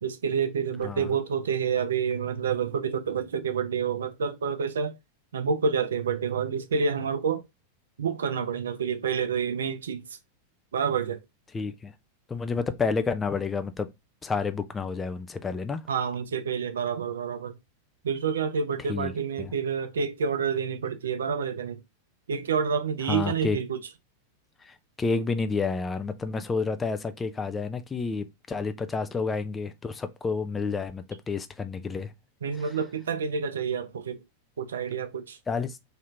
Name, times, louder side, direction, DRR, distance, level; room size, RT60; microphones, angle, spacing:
voice 1, 0.0-4.9 5.3-7.4 8.0-10.0 10.7-11.2 15.9-17.5 18.0-21.8 22.3-23.8 32.4-34.2 34.6-35.4, right 6 dB, 65° right, 0.4 m, -28 dB
voice 2, 11.5-11.9 12.3-13.9 14.2-15.8 18.9-19.1 19.4-19.5 23.1-23.6 24.6-32.1 35.5-35.8, left 4 dB, 15° left, 0.3 m, -30 dB
2.7 x 2.5 x 3.2 m
figure-of-eight pair, 90°, 0 cm